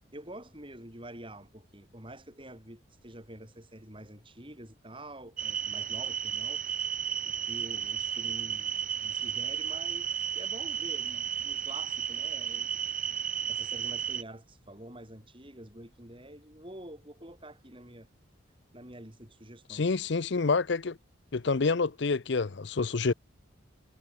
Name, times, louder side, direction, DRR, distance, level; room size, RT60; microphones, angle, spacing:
voice 1, 0.1-6.7 7.2-10.1 10.3-12.7 13.5-18.1 18.7-20.0, right 1 dB, 25° right, 7.9 m, -47 dB
sound 1, 5.4-14.2, right 8 dB, 40° right, 2.3 m, -33 dB
voice 2, 19.7-21.0 21.3-23.1, left 4 dB, 60° left, 0.6 m, -28 dB
head